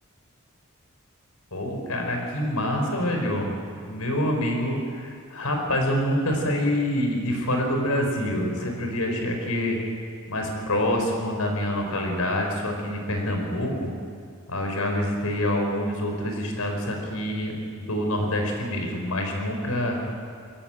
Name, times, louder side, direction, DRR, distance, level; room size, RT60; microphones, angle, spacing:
voice 1, 1.5-3.5 3.9-9.8 10.3-13.9 14.5-20.0, left 1 dB, 85° left, 2 dB, 4.8 m, -26 dB
22.5 x 15.0 x 9.1 m, 2.2 s
head